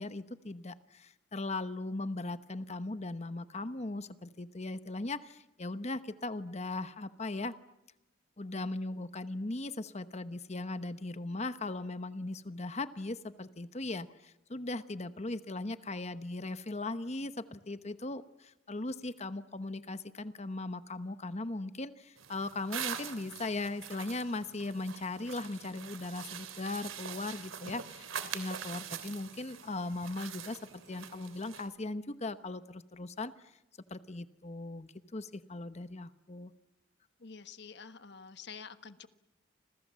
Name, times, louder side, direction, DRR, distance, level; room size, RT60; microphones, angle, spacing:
voice 1, 0.0-7.5 8.4-33.6 33.9-36.5, left 2 dB, 35° left, 11 dB, 1.0 m, -38 dB
sound 1, 22.2-31.7, right 8 dB, 85° right, 3.1 m, -44 dB
voice 2, 37.2-39.1, left 6 dB, 55° left, 11 dB, 1.4 m, -48 dB
29.5 x 26.5 x 7.5 m, 0.95 s
head